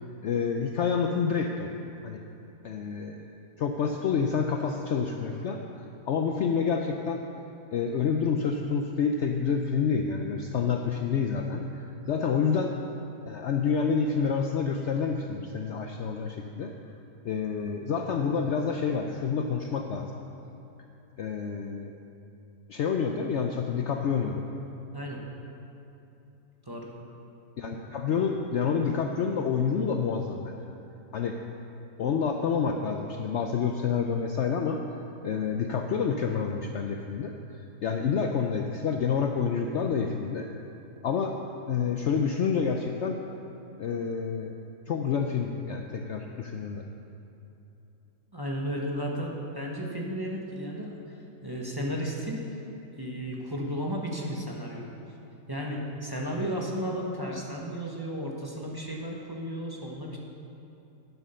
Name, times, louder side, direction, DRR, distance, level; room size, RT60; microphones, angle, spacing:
voice 1, 0.2-2.2 2.6-3.3 3.6-7.2 7.7-12.7 13.2-16.7 17.2-20.1 21.2-21.9 22.7-24.4 27.6-30.6 31.1-31.4 32.0-34.8 35.2-37.3 37.8-40.5 41.0-41.4 41.7-43.2 43.8-44.5 44.9-46.8, left 6 dB, 65° left, 3 dB, 0.7 m, -28 dB
voice 2, 48.3-52.4 53.0-54.9 55.5-60.2, equal, 15° right, -2 dB, 1.0 m, -34 dB
11.0 x 8.3 x 5.6 m, 2.9 s
omnidirectional pair, 1.6 m